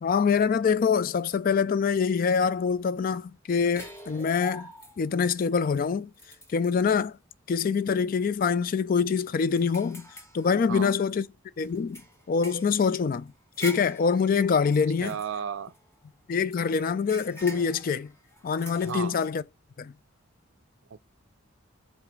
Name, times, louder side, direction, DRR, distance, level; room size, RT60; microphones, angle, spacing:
voice 1, 0.0-4.7 5.0-6.1 6.5-7.2 7.5-10.1 10.3-11.3 11.6-12.0 12.3-13.3 13.6-15.1 16.3-18.1 18.4-19.4 19.8-19.9, left 6 dB, 45° left, 0.3 m, -25 dB
sound 1, 3.8-5.3 5.7-5.8 6.1-7.0 7.6-7.8 8.2-8.3 8.7-11.1 11.6-16.0 16.5-19.3, equal, 15° left, 1.1 m, -45 dB
voice 2, 15.0-15.7 18.8-19.2 20.9-21.0, right 7 dB, 65° right, 0.4 m, -33 dB
4.9 x 4.1 x 4.6 m
head